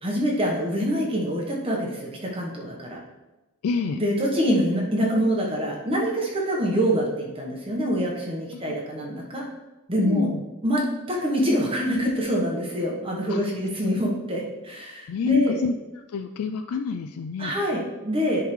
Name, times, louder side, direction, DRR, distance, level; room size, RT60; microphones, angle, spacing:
voice 1, 0.0-3.0 3.9-9.4 9.9-10.3 10.6-10.8 11.1-15.5 17.4-18.5, equal, 25° right, -2 dB, 1.1 m, -25 dB
voice 2, 3.6-4.0 8.5-8.8 10.0-10.4 13.3-14.0 15.1-15.8 16.1-17.5, left 5 dB, 85° left, 7 dB, 0.4 m, -28 dB
10.5 x 3.7 x 3.1 m, 1.1 s
head